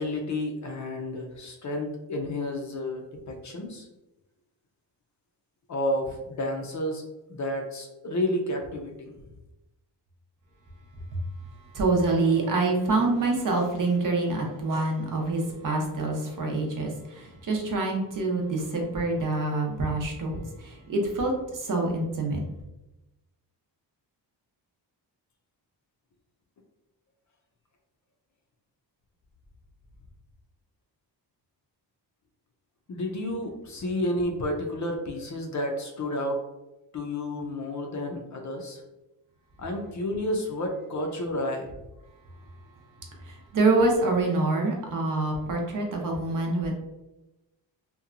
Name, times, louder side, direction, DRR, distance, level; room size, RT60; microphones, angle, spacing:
voice 1, 0.0-3.9 5.7-7.0 7.3-9.1 32.9-36.4 36.9-38.8 39.6-41.7, left 1 dB, 45° left, 2 dB, 0.4 m, -31 dB
voice 2, 11.7-22.4 43.2-46.8, right 2 dB, 50° right, 1 dB, 0.6 m, -26 dB
2.8 x 2.2 x 2.4 m, 0.97 s
wide cardioid pair, 140°, 42 cm